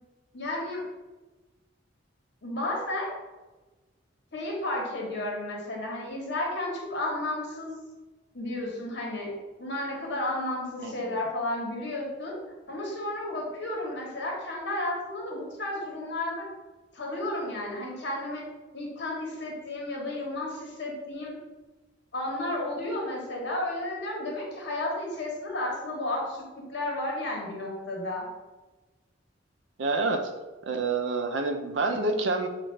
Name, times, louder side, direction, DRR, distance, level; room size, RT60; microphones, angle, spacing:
voice 1, 0.3-0.8 2.4-3.1 4.3-7.7 8.3-9.3 9.6-12.3 12.7-16.4 16.9-18.4 18.7-21.4 22.1-28.2, left 1 dB, 65° left, -2 dB, 1.1 m, -32 dB
voice 2, 10.8-11.2 29.8-30.3 30.7-32.5, right 3 dB, 70° right, 5 dB, 0.5 m, -28 dB
5.6 x 2.4 x 3.2 m, 1.2 s
head